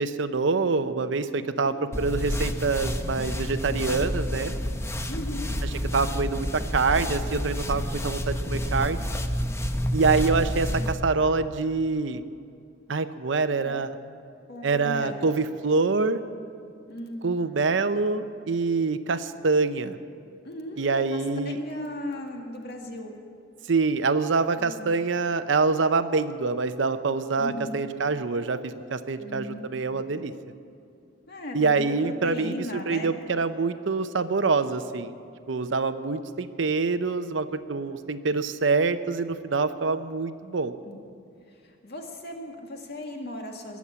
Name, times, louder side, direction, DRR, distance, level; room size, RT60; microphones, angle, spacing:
voice 1, 0.0-4.5 5.9-9.1 9.9-12.2 12.9-13.9 14.6-16.2 17.2-20.0 20.8-21.6 23.7-30.3 31.5-35.1 35.5-40.7, right 4 dB, 70° right, 11 dB, 0.7 m, -25 dB
sound 1, 1.9-10.9, equal, 15° left, 0.7 m, -29 dB
voice 2, 5.1-5.6 13.6-13.8 14.5-15.3 16.9-17.3 20.4-23.1 24.6-24.9 27.4-27.7 29.2-30.1 31.3-33.3 40.8-41.0 41.5-43.8, left 1 dB, 60° left, 2 dB, 2.0 m, -37 dB
20.5 x 7.3 x 8.5 m, 2.5 s
head